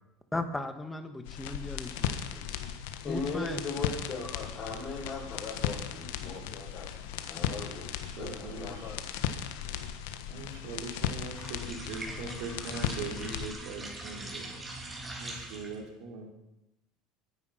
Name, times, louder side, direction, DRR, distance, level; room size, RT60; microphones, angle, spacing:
voice 1, 0.3-2.6 3.0-3.6, left 2 dB, 10° left, 8 dB, 1.5 m, -37 dB
sound 1, 1.3-13.5, left 10 dB, 80° left, 1.3 m, -36 dB
voice 2, 3.0-6.9 7.3-7.8 8.2-9.0, left 3 dB, 35° left, -2 dB, 6.7 m, -38 dB
voice 3, 8.0-8.9 10.3-14.6 15.2-16.3, right 4 dB, 70° right, 2 dB, 3.6 m, -41 dB
sound 2, 11.2-15.9, right 2 dB, 15° right, 3.5 m, -42 dB
21.5 x 10.0 x 5.7 m, 0.93 s
supercardioid pair, 130°, 0 cm